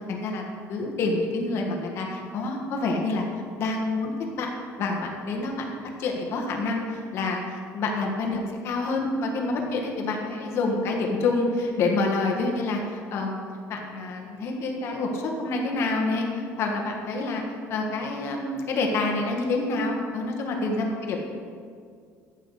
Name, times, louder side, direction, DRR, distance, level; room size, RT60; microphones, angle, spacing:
voice 1, 0.1-3.2 3.6-4.5 4.8-5.6 6.0-13.4 13.7-17.4 17.7-21.2, left 3 dB, 50° left, 1 dB, 1.6 m, -27 dB
14.0 x 8.1 x 4.2 m, 2.1 s
cardioid pair, 170°, 6 cm